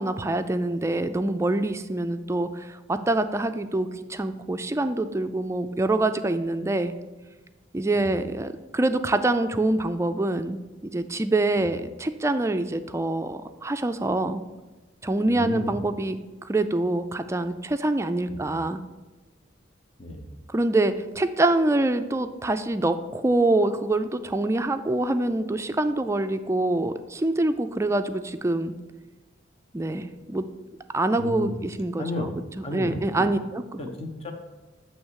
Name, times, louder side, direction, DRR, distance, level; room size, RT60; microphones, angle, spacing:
voice 1, 0.0-6.9 7.7-14.4 15.0-18.8 20.5-28.7 29.7-30.5 30.9-32.3 32.7-33.8, right 2 dB, 15° right, 9 dB, 0.3 m, -25 dB
voice 2, 15.3-15.8 18.3-18.5 20.0-20.2 31.2-31.6 32.0-32.3 32.6-33.3 33.8-34.3, left 2 dB, 30° left, 2 dB, 0.8 m, -33 dB
7.9 x 3.1 x 6.3 m, 1.2 s
head